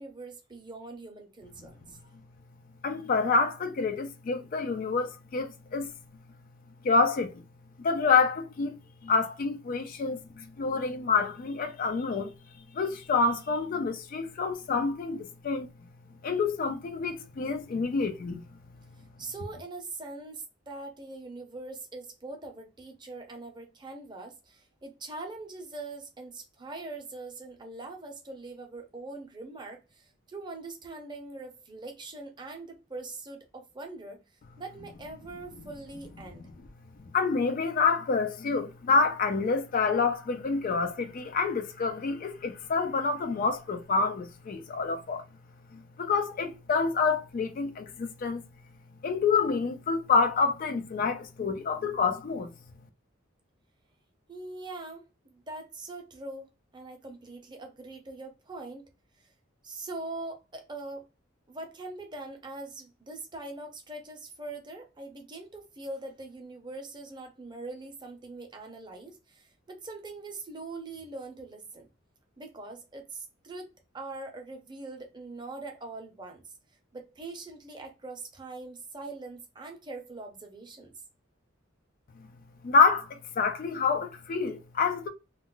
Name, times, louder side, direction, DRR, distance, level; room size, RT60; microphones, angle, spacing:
voice 1, 0.0-2.0 19.2-34.2 34.6-36.5 54.3-56.5 56.7-58.9 59.2-59.3 59.6-61.0 61.5-71.9 72.4-76.5 76.9-80.9, right 2 dB, 20° right, 0.6 m, -42 dB
voice 2, 2.8-5.9 6.8-7.3 7.8-12.3 12.7-15.7 16.2-18.4 37.1-45.2 45.7-48.4 49.0-52.5 82.2-82.3 82.6-85.1, left 4 dB, 40° left, 0.3 m, -27 dB
2.3 x 2.1 x 3.7 m
head